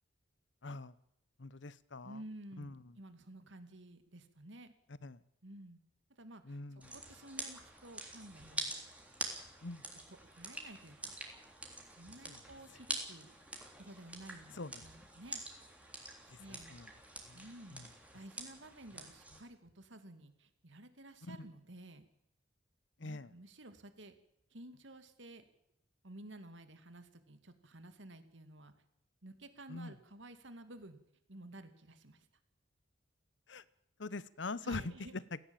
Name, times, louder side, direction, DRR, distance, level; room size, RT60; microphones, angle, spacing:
voice 1, 0.6-0.9 1.4-2.2 2.6-2.7 5.0-5.2 6.5-6.8 9.6-9.8 12.3-12.4 14.6-14.7 16.5-16.9 17.3-17.4 17.7-17.8 21.3-21.4 23.0-23.3 29.7-29.9 33.5-33.6 34.0-34.9, left 3 dB, 70° left, 18 dB, 0.9 m, -43 dB
voice 2, 2.0-4.7 5.4-5.8 6.2-8.7 10.1-11.1 12.0-13.3 13.8-15.4 16.4-16.7 17.3-17.8 18.1-22.0 23.0-24.1 24.5-25.4 26.0-28.7 29.2-31.0 31.3-32.3 34.6-35.2, right 1 dB, 75° right, 10 dB, 2.5 m, -53 dB
sound 1, 6.8-19.4, right 2 dB, 5° right, 3.5 m, -46 dB
17.5 x 17.0 x 8.9 m, 0.75 s
head